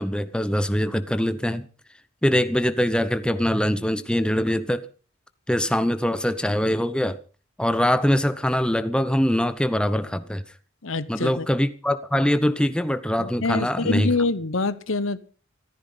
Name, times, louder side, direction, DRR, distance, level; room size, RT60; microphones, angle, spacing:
voice 1, 0.0-1.7 2.2-4.8 5.5-7.2 7.6-10.4 11.1-14.1, equal, 5° left, 0.8 m, -23 dB
voice 2, 10.8-11.5 13.2-15.2, left 3 dB, 65° left, 0.9 m, -25 dB
14.5 x 14.0 x 5.7 m
head